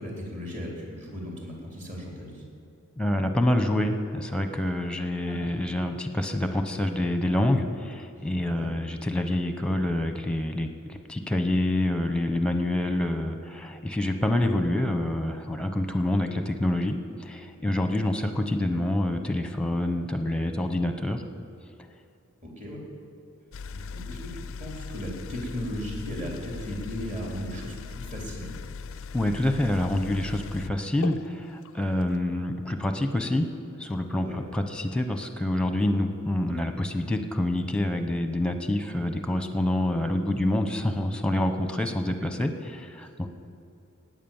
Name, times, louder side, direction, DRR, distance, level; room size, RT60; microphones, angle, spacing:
voice 1, 0.0-2.4 5.3-5.5 8.5-8.7 22.4-22.8 23.7-28.6 34.2-34.4, equal, 35° right, -2 dB, 3.5 m, -36 dB
voice 2, 3.0-21.2 29.1-33.5 33.8-43.3, left 1 dB, 5° left, 7 dB, 0.9 m, -27 dB
sound 1, 23.5-32.2, left 5 dB, 60° left, 0.4 m, -39 dB
17.0 x 9.6 x 7.2 m, 2.6 s
head